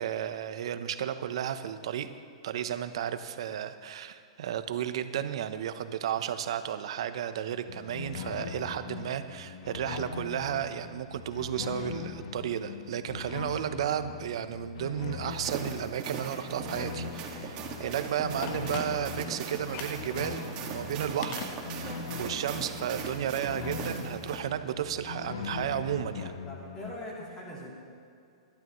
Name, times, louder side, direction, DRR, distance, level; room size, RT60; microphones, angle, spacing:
voice 1, 0.0-2.1 2.4-21.9 22.2-26.3, right 9 dB, 70° right, 11 dB, 0.8 m, -33 dB
sound 1, 7.7-26.9, left 6 dB, 75° left, 1.0 m, -41 dB
sound 2, 15.3-24.4, right 5 dB, 35° right, 1.9 m, -39 dB
Telephone, 18.4-19.3 19.7-20.1 21.2-22.1 22.4-22.5, left 6 dB, 45° left, 1.2 m, -40 dB
voice 2, 26.4-27.7, left 1 dB, 20° left, -6 dB, 3.1 m, -41 dB
22.5 x 12.0 x 3.1 m, 2.4 s
hypercardioid pair, 145°, 3 cm